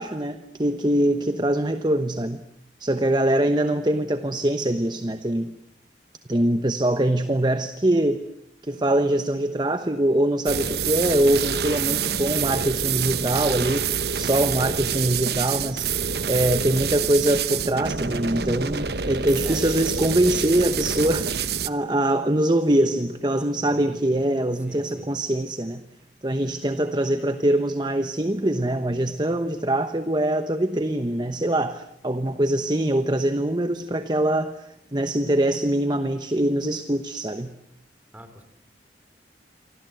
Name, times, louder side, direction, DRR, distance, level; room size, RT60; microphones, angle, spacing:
voice 1, 0.0-2.4 2.8-5.5 6.3-8.2 8.6-16.0 16.3-25.8 26.2-37.5, right 1 dB, 25° right, 10 dB, 1.0 m, -23 dB
sound 1, 10.5-21.7, right 7 dB, 60° right, 1.1 m, -27 dB
voice 2, 19.4-19.7 23.5-24.2 24.6-25.1 38.1-38.4, equal, 10° right, 9 dB, 3.3 m, -44 dB
28.0 x 25.0 x 7.9 m, 0.76 s
head